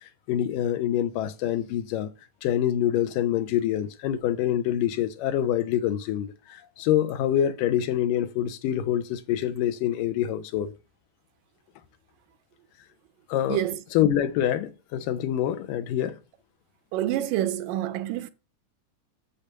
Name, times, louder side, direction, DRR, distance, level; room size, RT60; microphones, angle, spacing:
voice 1, 0.3-2.1 2.4-10.7 13.3-13.6 13.9-16.2, left 11 dB, 80° left, 2.5 m, -26 dB
voice 2, 13.5-13.8 16.9-18.3, right 13 dB, 80° right, 2.4 m, -27 dB
8.5 x 7.0 x 6.6 m
omnidirectional pair, 3.8 m